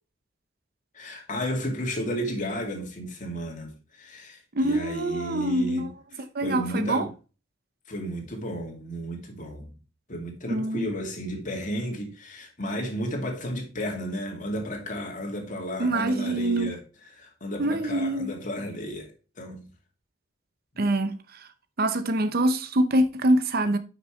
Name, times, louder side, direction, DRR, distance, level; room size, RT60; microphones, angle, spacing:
voice 1, 0.9-7.1 7.9-9.7 10.1-19.1 19.4-19.7 20.7-20.8, equal, 40° left, 2.4 m, -33 dB
voice 2, 4.5-5.9 6.3-7.1 10.5-10.9 15.8-16.7 17.6-18.3 20.8-21.5 21.8-23.8, right 1 dB, 50° right, 0.8 m, -25 dB
9.6 x 6.1 x 3.2 m
head